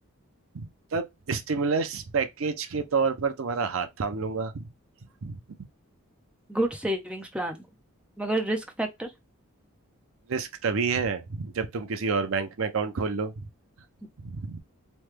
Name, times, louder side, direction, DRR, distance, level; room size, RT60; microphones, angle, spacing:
voice 1, 0.5-4.7 5.2-5.4 10.3-13.3 14.2-14.6, right 5 dB, 65° right, 0.5 m, -29 dB
voice 2, 6.5-7.6 8.2-9.1, right 1 dB, 5° right, 0.5 m, -29 dB
3.1 x 2.2 x 3.2 m
head